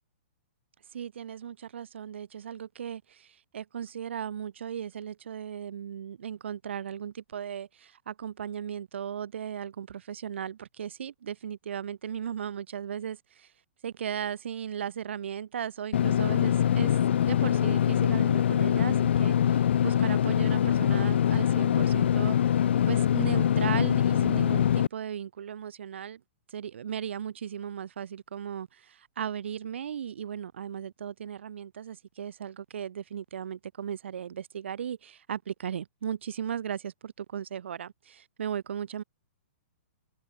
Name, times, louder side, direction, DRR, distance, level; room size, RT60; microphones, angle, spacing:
voice 1, 0.9-13.5 13.8-22.4 22.9-26.2 26.5-39.0, right 8 dB, 75° right, 0.9 m, -36 dB
Engine / Mechanisms, 15.9-24.9, left 9 dB, 70° left, 0.5 m, -24 dB
hypercardioid pair, 160°, 6 cm